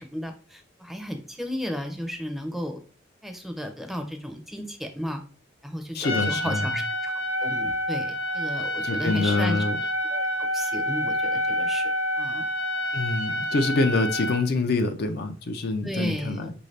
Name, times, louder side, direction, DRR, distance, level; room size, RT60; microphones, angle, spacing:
voice 1, 0.0-2.8 3.2-5.2 5.6-7.1 7.4-9.6 10.1-11.9 12.2-12.4 15.8-16.5, equal, ahead, 0.5 m, -34 dB
voice 2, 5.9-6.7 8.8-9.8 12.9-16.5, left 3 dB, 55° left, 0.5 m, -26 dB
Trumpet, 6.0-14.5, equal, 80° left, 0.7 m, -28 dB
5.5 x 2.7 x 3.2 m
head